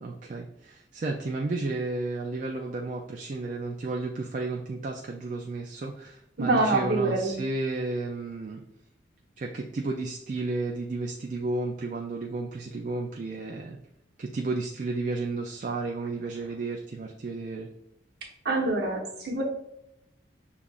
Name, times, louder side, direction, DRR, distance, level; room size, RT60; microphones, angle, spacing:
voice 1, 0.0-8.6 9.4-13.8 14.2-17.7, right 3 dB, 40° right, 1 dB, 0.3 m, -32 dB
voice 2, 6.4-7.4 18.4-19.4, right 2 dB, 55° right, -1 dB, 1.0 m, -25 dB
6.8 x 2.4 x 2.4 m, 0.83 s
head